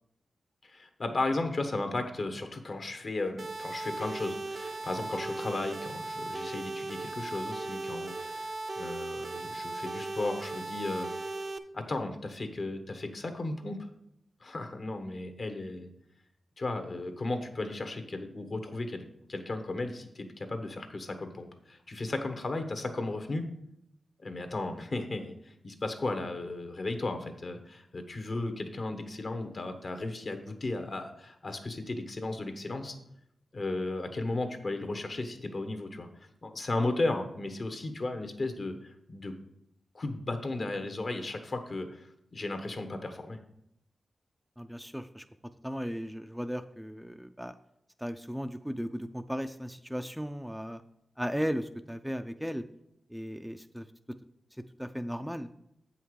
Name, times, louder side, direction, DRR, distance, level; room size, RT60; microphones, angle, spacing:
voice 1, 0.6-11.1 11.7-13.9 14.4-15.9 16.6-23.5 24.2-33.0 33.5-39.3 39.9-43.4, left 2 dB, 55° left, 7 dB, 1.2 m, -35 dB
sound 1, 3.4-11.6, right 2 dB, 55° right, 0.6 m, -37 dB
voice 2, 44.6-45.2 45.6-47.6 48.0-50.8 51.2-52.7 53.1-54.2 54.5-55.5, equal, ahead, 8 dB, 0.5 m, -36 dB
7.8 x 5.7 x 4.8 m, 0.77 s
cardioid pair, 50°, 0 cm